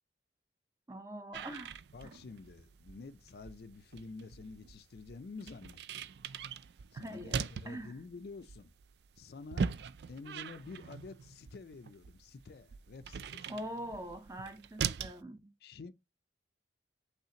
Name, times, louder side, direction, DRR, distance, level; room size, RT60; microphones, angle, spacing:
voice 1, 0.9-1.8 2.0-2.2 6.9-7.4 7.6-8.0 13.5-15.5, equal, 15° right, 0.7 m, -43 dB
sound 1, 1.3-15.2, right 6 dB, 65° right, 0.4 m, -41 dB
voice 2, 1.9-6.0 6.9-8.7 9.2-9.7 10.1-13.6 15.6-15.9, left 4 dB, 55° left, 0.4 m, -49 dB
5.7 x 3.3 x 2.8 m
head